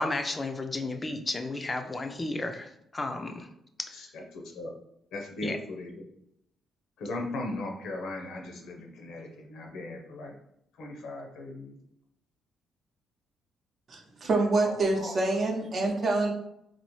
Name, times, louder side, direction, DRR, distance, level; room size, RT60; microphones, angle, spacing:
voice 1, 0.0-3.5 3.8-3.9 5.4-5.6, left 2 dB, 25° left, 6 dB, 0.4 m, -33 dB
voice 2, 3.9-4.7 5.1-6.1 7.0-10.3 10.8-11.8 14.6-15.1, left 2 dB, 80° left, 1 dB, 0.7 m, -38 dB
voice 3, 13.9-16.3, right 2 dB, 45° right, 1 dB, 0.8 m, -26 dB
4.0 x 2.0 x 3.0 m, 0.77 s
cardioid pair, 90°, 0 cm